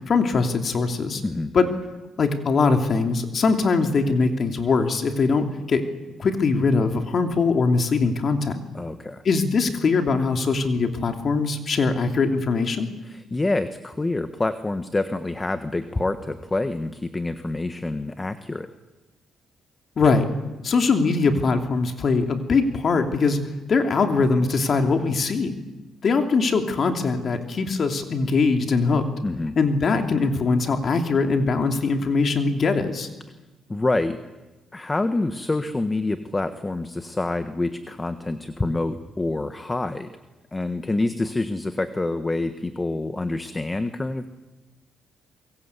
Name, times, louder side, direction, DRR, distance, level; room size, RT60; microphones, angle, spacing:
voice 1, 0.0-1.2 1.5-1.7 2.2-5.8 6.2-8.6 9.2-12.9 20.0-20.3 20.6-23.4 23.7-25.5 26.0-29.0 29.6-33.1, left 4 dB, 50° left, 5 dB, 2.9 m, -21 dB
voice 2, 8.7-9.2 13.0-18.7 29.2-29.6 33.7-34.2 34.7-40.1 40.5-44.3, left 2 dB, 20° left, 9 dB, 1.4 m, -27 dB
26.0 x 22.5 x 8.4 m, 1.1 s
cardioid pair, 90°, 0 cm